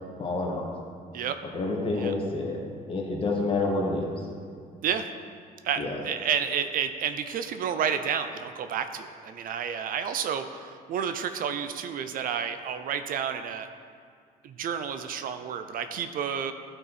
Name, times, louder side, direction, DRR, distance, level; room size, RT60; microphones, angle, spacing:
voice 1, 0.2-0.7 1.5-2.6 2.9-4.1 5.8-6.0, left 2 dB, 30° left, -1 dB, 1.6 m, -28 dB
voice 2, 5.6-13.7 14.4-16.5, right 7 dB, 55° right, 9 dB, 0.5 m, -30 dB
12.0 x 4.4 x 4.1 m, 2.2 s
cardioid pair, 110°, 17 cm